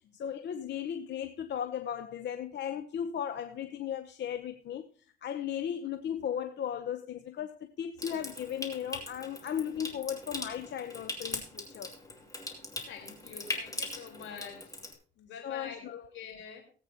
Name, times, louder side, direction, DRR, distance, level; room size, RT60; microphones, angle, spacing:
voice 1, 0.1-4.9 5.2-11.9 15.4-16.0, left 9 dB, 60° left, 0.9 m, -36 dB
Water tap faucet / Sink (filling or washing) / Trickle dribble, 8.0-14.9, left 2 dB, 15° left, 2.7 m, -41 dB
voice 2, 12.9-14.7 15.2-16.6, left 7 dB, 85° left, 4.1 m, -45 dB
18.5 x 8.5 x 2.9 m
cardioid pair, 90°, 20 cm